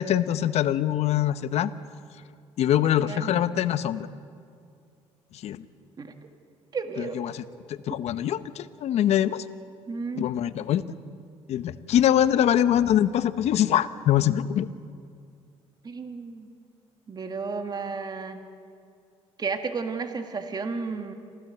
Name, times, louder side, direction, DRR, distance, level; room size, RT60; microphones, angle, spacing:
voice 1, 0.0-1.7 2.6-4.1 5.4-5.6 7.0-9.4 10.2-10.8 11.5-14.7, left 11 dB, 70° left, 14 dB, 0.9 m, -24 dB
voice 2, 3.0-3.4 6.0-6.1 6.7-7.2 9.9-10.3 15.8-16.5 17.1-18.4 19.4-21.1, right 4 dB, 35° right, 6 dB, 1.9 m, -32 dB
26.5 x 16.0 x 8.0 m, 2.3 s
cardioid pair, 95°, 12 cm